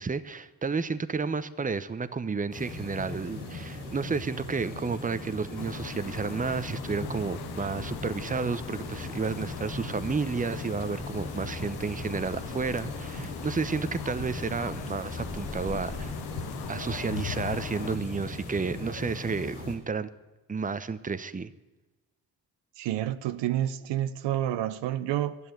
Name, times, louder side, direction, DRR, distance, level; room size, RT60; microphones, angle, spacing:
voice 1, 0.0-16.1 16.7-20.1 20.5-21.5, right 4 dB, 20° right, 0.8 m, -31 dB
sound 1, 2.5-19.8, left 2 dB, 90° left, 2.8 m, -39 dB
sound 2, 5.6-18.0, left 12 dB, 60° left, 0.6 m, -42 dB
sound 3, 5.8-18.6, left 2 dB, 15° left, 2.3 m, -47 dB
voice 2, 22.8-25.4, right 12 dB, 70° right, 0.7 m, -29 dB
11.0 x 8.2 x 8.8 m
hypercardioid pair, 50°, 44 cm